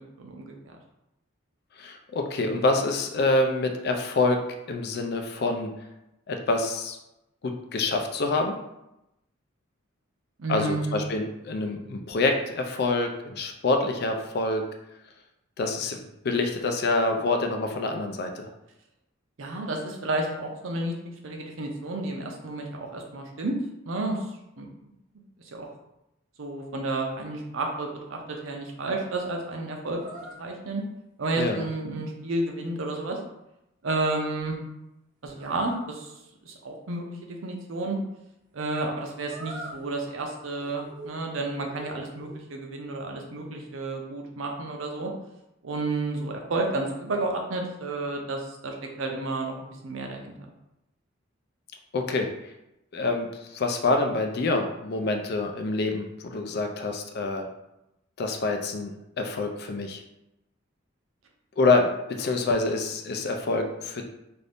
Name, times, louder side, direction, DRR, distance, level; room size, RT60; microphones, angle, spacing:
voice 1, 0.2-0.7 10.4-11.0 19.4-20.9 21.2-23.5 23.9-24.2 24.6-24.7 25.5-25.7 26.4-30.0 30.4-30.8 31.2-33.2 33.8-34.6 35.2-36.1 36.4-38.0 38.5-45.1 45.6-50.4, right 2 dB, 75° right, 2 dB, 0.6 m, -31 dB
voice 2, 1.8-4.4 4.7-5.7 6.3-7.0 7.4-8.6 10.5-14.6 15.6-16.0 16.2-18.5 31.4-31.6 51.9-52.3 52.9-53.3 53.5-57.5 58.2-60.0 61.6-61.9 62.2-64.0, left 3 dB, 50° left, 4 dB, 0.4 m, -26 dB
sound 1, 29.9-30.4 35.3-35.8 39.2-39.8 40.2-41.2 41.5-42.4, right 2 dB, 40° right, 0.8 m, -42 dB
2.6 x 2.5 x 3.4 m, 0.89 s
head